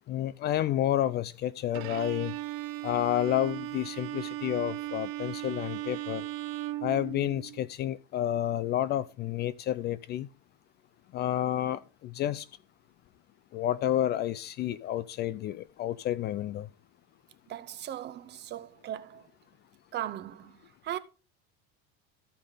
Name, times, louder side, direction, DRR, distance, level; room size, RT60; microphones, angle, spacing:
voice 1, 0.1-2.4 2.8-6.2 6.8-10.3 11.1-12.5 13.5-16.7, left 12 dB, 35° left, 0.4 m, -30 dB
Bowed string instrument, 1.7-7.7, right 15 dB, 80° right, 0.9 m, -37 dB
voice 2, 17.5-19.3 19.9-21.0, right 12 dB, 35° right, 0.8 m, -38 dB
14.0 x 5.0 x 3.8 m
cardioid pair, 150°, 31 cm